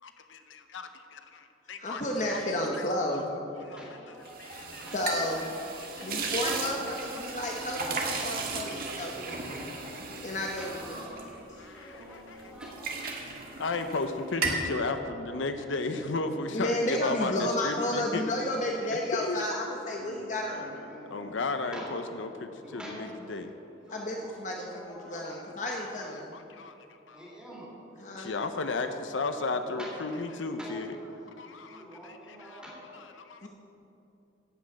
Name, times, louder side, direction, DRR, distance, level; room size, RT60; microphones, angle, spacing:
voice 1, 0.0-2.0 2.3-2.4 2.7-2.8 3.7-3.9 4.4-4.9 5.7-6.3 11.6-12.4 13.6-18.2 19.1-19.5 21.1-23.5 25.1-25.2 25.8-25.9 26.3-26.7 27.1-27.3 28.2-31.0 31.4-32.6 33.1-33.5, left 3 dB, 85° left, 8 dB, 0.7 m, -34 dB
voice 2, 1.8-3.3 4.9-5.5 6.0-9.7 10.2-10.8 16.5-20.7 23.9-26.3 28.0-28.4 33.4-33.5, left 1 dB, 40° left, 0 dB, 1.0 m, -32 dB
voice 3, 3.6-4.3 4.7-5.3 6.1-6.7 9.2-13.0 20.7-22.0 22.6-23.5 23.8-25.7 27.1-27.7 29.6-29.9 30.4-33.1, equal, 5° right, -6 dB, 3.6 m, -47 dB
sound 1, 4.2-12.0 12.4-14.1 14.3-14.7, right 3 dB, 50° right, 1.6 m, -35 dB
sound 2, 5.9-21.9, equal, 85° right, 1.2 m, -50 dB
14.5 x 6.3 x 8.5 m, 2.9 s
head